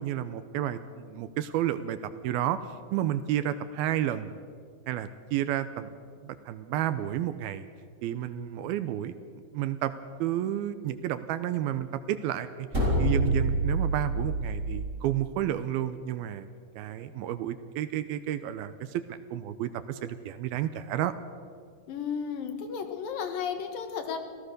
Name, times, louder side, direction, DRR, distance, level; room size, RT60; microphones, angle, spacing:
voice 1, 0.0-2.0 2.2-2.6 2.9-4.3 4.9-5.9 6.2-7.6 8.0-9.2 9.5-9.9 10.2-12.7 13.0-16.5 16.8-21.1, right 12 dB, 80° right, 12 dB, 2.4 m, -31 dB
sound 1, 12.7-14.8, right 1 dB, 20° right, 4.5 m, -26 dB
voice 2, 21.9-24.2, left 7 dB, 65° left, 7 dB, 3.0 m, -33 dB
26.0 x 17.0 x 6.7 m, 2.1 s
omnidirectional pair, 4.8 m